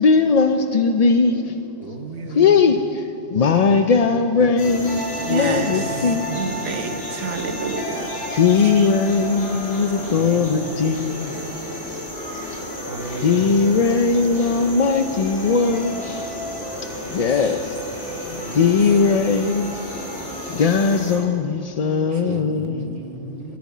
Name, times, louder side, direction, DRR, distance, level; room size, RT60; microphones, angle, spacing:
voice 1, 0.0-2.0 2.3-6.3 8.3-11.4 12.5-12.7 13.2-16.1 16.7-17.8 18.3-19.8 20.5-23.0, left 5 dB, 50° left, 7 dB, 0.4 m, -19 dB
voice 2, 1.8-2.6 4.4-4.9 5.2-6.5 10.0-10.9 12.9-13.5 17.0-17.5 18.4-18.7 22.1-23.6, right 3 dB, 55° right, 6 dB, 1.2 m, -35 dB
sound 1, 4.6-21.2, equal, 75° left, 3.1 m, -31 dB
voice 3, 5.2-8.1 8.6-8.9 22.1-22.2, right 3 dB, 75° right, 6 dB, 1.4 m, -29 dB
14.0 x 9.3 x 8.4 m, 2.4 s
omnidirectional pair, 1.2 m